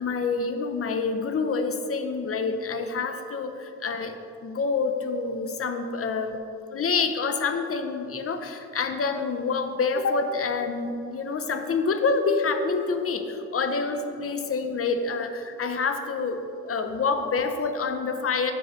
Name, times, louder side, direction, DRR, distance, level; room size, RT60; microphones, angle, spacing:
voice 1, 0.0-4.1 4.4-6.4 6.7-18.5, left 4 dB, 50° left, 7 dB, 0.7 m, -27 dB
10.5 x 7.8 x 3.1 m, 2.7 s
wide cardioid pair, 175°, 30 cm